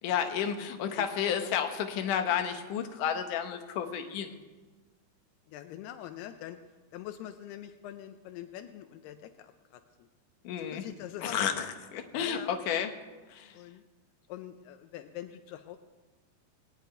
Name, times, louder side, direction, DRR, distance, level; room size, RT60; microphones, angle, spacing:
voice 1, 0.0-4.4 10.4-10.8 11.2-12.9 13.3-13.6, left 8 dB, 65° left, 6 dB, 2.3 m, -31 dB
voice 2, 1.0-1.5 5.5-6.6 6.9-10.1 10.6-11.5 12.1-12.5 13.5-13.8 14.3-15.8, left 12 dB, 85° left, 8 dB, 2.7 m, -44 dB
19.5 x 6.8 x 9.2 m, 1.3 s
omnidirectional pair, 4.5 m